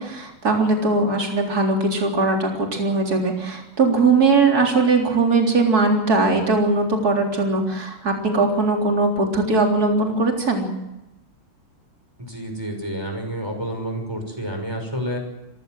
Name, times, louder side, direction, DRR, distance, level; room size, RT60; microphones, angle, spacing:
voice 1, 0.0-10.7, right 3 dB, 45° right, 1 dB, 4.2 m, -20 dB
voice 2, 12.2-15.2, equal, 10° right, 4 dB, 5.8 m, -29 dB
26.5 x 16.0 x 7.8 m, 0.94 s
omnidirectional pair, 2.3 m